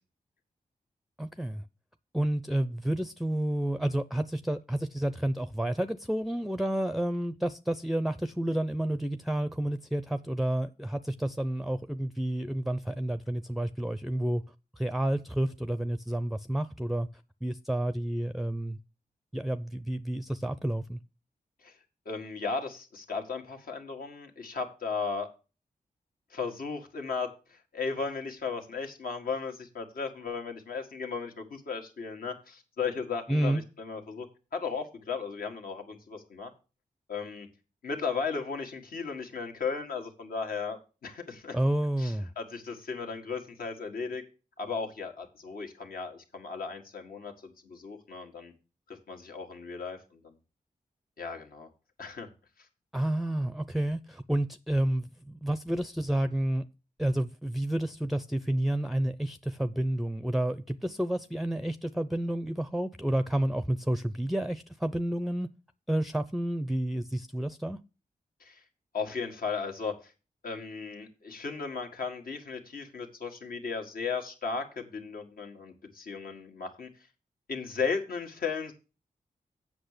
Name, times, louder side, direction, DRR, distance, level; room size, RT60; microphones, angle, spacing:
voice 1, 1.2-1.6 2.1-14.4 14.8-17.1 17.4-18.8 19.3-21.0 33.3-33.6 41.5-42.3 52.9-56.6 57.0-65.5 65.9-67.8, right 1 dB, ahead, 0.5 m, -30 dB
voice 2, 22.1-25.3 26.3-34.3 34.5-36.5 37.1-37.5 37.8-41.6 42.0-44.2 44.6-48.5 48.9-50.3 51.2-51.7 52.0-52.3 68.4-68.6 68.9-70.1 70.4-76.9 77.5-78.7, left 5 dB, 75° left, 1.8 m, -36 dB
8.0 x 6.1 x 6.6 m
cardioid pair, 65°, 15 cm